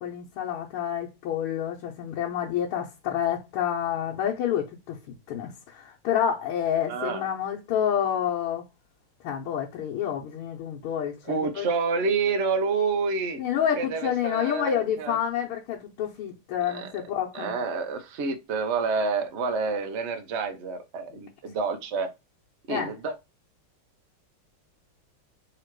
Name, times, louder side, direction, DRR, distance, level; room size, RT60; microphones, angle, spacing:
voice 1, 0.0-4.9 5.3-8.6 9.2-11.7 13.4-17.5 22.7-22.9, left 9 dB, 90° left, 1.7 m, -28 dB
voice 2, 6.9-7.2 11.2-13.4 13.8-15.2 16.7-16.9 17.3-22.1 22.7-23.1, right 4 dB, 60° right, 0.7 m, -28 dB
3.9 x 2.9 x 4.5 m
omnidirectional pair, 2.3 m